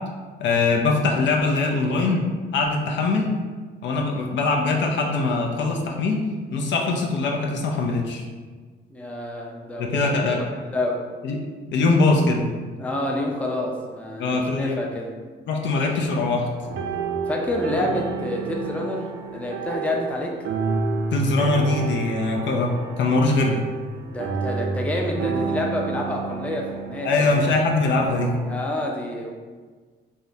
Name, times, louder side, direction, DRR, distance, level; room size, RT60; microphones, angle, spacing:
voice 1, 0.4-2.3 2.5-3.4 3.8-6.2 6.5-8.2 9.8-10.4 11.2-11.4 11.7-12.5 14.2-14.9 15.5-16.5 21.1-23.6 27.0-28.3, left 3 dB, 65° left, 0 dB, 0.5 m, -22 dB
voice 2, 8.9-10.1 10.7-11.0 12.8-15.1 17.3-19.0 19.3-20.3 24.1-27.6 28.5-29.3, left 1 dB, 5° left, 0 dB, 0.4 m, -28 dB
sound 1, 15.8-28.6, right 4 dB, 80° right, 0.4 m, -30 dB
3.6 x 2.1 x 2.6 m, 1.4 s
cardioid pair, 90°, 20 cm